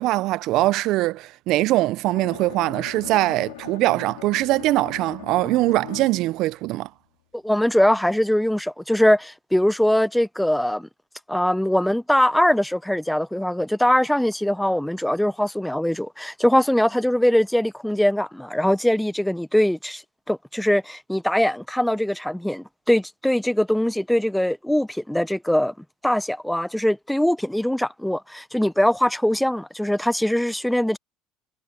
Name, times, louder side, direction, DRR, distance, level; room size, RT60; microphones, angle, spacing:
voice 1, 0.0-6.9, right 17 dB, 65° right, 0.5 m, -22 dB
Bowed string instrument, 2.0-6.4, left 17 dB, 90° left, 4.7 m, -40 dB
voice 2, 7.3-10.9 11.3-20.0 20.3-25.7 26.0-31.0, left 1 dB, 5° left, 0.7 m, -22 dB
supercardioid pair, 80°, 0 cm